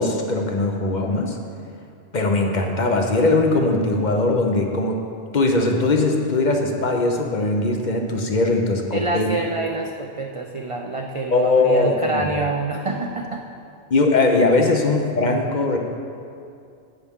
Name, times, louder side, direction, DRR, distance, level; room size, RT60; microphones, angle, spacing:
voice 1, 0.0-1.4 2.1-5.0 5.3-9.3 11.3-12.2 13.9-15.8, left 2 dB, 45° left, 2 dB, 0.7 m, -20 dB
voice 2, 8.9-13.5, right 3 dB, 55° right, 2 dB, 0.3 m, -26 dB
9.9 x 8.4 x 3.6 m, 2.4 s
omnidirectional pair, 1.2 m